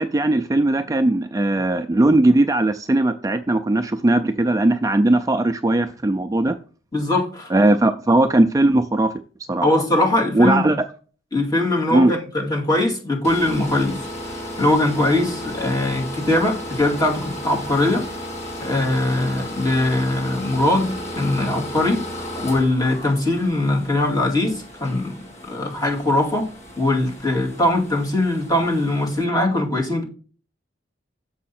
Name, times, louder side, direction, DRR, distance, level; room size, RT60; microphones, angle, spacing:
voice 1, 0.0-6.6 7.5-9.1 9.5-9.7 10.3-10.9 11.9-12.1, right 2 dB, 20° right, 8 dB, 0.4 m, -18 dB
voice 2, 6.9-7.5 9.6-10.7 11.3-14.0 14.6-18.1 18.6-22.0 22.4-25.2 25.4-26.5 26.8-30.0, left 1 dB, 20° left, -1 dB, 2.3 m, -21 dB
sound 1, 13.2-29.2, equal, 40° left, 2.1 m, -34 dB
7.3 x 5.5 x 4.3 m, 0.39 s
head